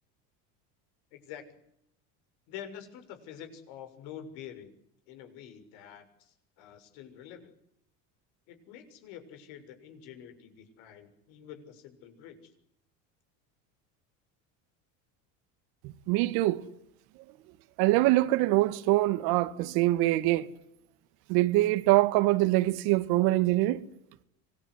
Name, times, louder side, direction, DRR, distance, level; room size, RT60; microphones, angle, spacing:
voice 1, 1.1-1.4 2.5-4.8 5.1-7.5 8.5-12.5, left 9 dB, 75° left, 6.9 m, -47 dB
voice 2, 15.8-16.6 17.8-20.5 21.3-23.8, right 18 dB, 70° right, 2.1 m, -24 dB
26.5 x 21.5 x 9.9 m
supercardioid pair, 105°, 38 cm